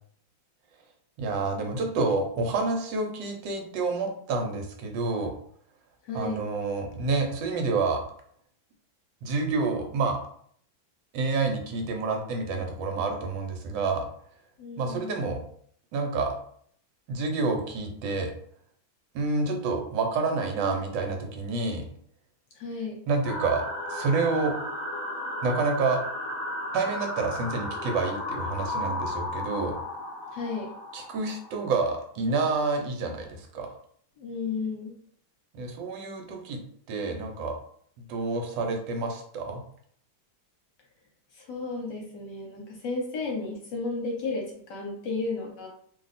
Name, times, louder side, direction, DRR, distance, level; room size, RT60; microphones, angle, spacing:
voice 1, 1.2-5.3 6.1-8.0 9.2-10.2 11.1-14.1 14.8-15.4 15.9-16.3 17.1-18.3 19.1-21.8 23.1-23.6 23.9-24.5 25.4-26.0 26.7-29.8 30.9-33.7 35.5-36.6 36.9-37.5 38.1-39.6, right 3 dB, 70° right, 3 dB, 1.4 m, -28 dB
voice 2, 6.0-6.5 14.6-15.1 22.5-23.0 30.3-30.7 34.2-34.9 41.3-45.7, left 3 dB, 65° left, 0 dB, 1.3 m, -33 dB
sound 1, 23.2-31.8, left 1 dB, 50° left, 1.4 m, -34 dB
3.1 x 2.3 x 4.0 m, 0.62 s
omnidirectional pair, 2.2 m